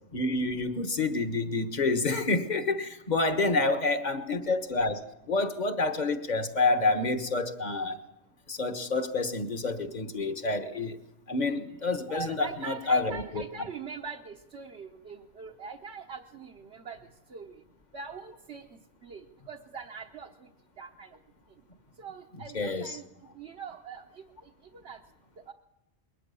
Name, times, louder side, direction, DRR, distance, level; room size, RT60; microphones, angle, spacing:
voice 1, 0.1-8.0 8.5-11.0 11.3-13.4 22.5-23.0, left 3 dB, 40° left, 9 dB, 1.4 m, -28 dB
voice 2, 12.1-17.0 17.3-17.5 17.9-18.6 19.0-20.5 20.8-21.1 22.0-23.1 23.3-25.0 25.5-25.6, right 6 dB, 70° right, 0 dB, 1.3 m, -42 dB
21.5 x 19.0 x 7.0 m, 0.92 s
omnidirectional pair, 1.2 m